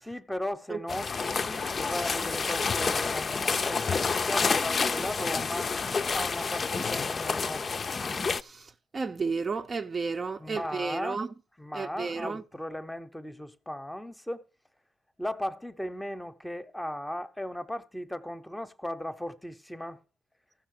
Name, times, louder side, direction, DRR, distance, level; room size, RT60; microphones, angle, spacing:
voice 1, 0.0-5.7 6.1-7.7 10.4-11.2 11.6-14.4 15.2-20.0, left 1 dB, 5° left, 0.9 m, -37 dB
sound 1, 0.9-8.4, left 4 dB, 40° left, 0.6 m, -29 dB
voice 2, 8.4-11.3 11.7-12.4, right 4 dB, 35° right, 0.6 m, -32 dB
15.0 x 5.7 x 6.5 m
cardioid pair, 90°, 0 cm